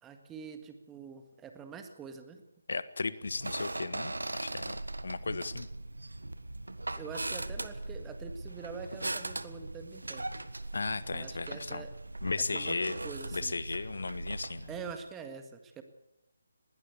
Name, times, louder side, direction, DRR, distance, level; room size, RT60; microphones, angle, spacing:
voice 1, 0.0-2.4 7.0-10.2 11.1-11.9 12.5-12.8 13.0-13.6 14.7-15.8, right 6 dB, 10° right, 7 dB, 1.9 m, -45 dB
voice 2, 2.7-5.7 10.7-11.8 12.2-13.0 13.3-14.7, left 4 dB, 65° left, 16 dB, 1.2 m, -35 dB
sound 1, 3.2-15.0, right 2 dB, 80° right, 1.6 m, -39 dB
20.5 x 17.5 x 8.2 m, 0.84 s
figure-of-eight pair, 150°, 0 cm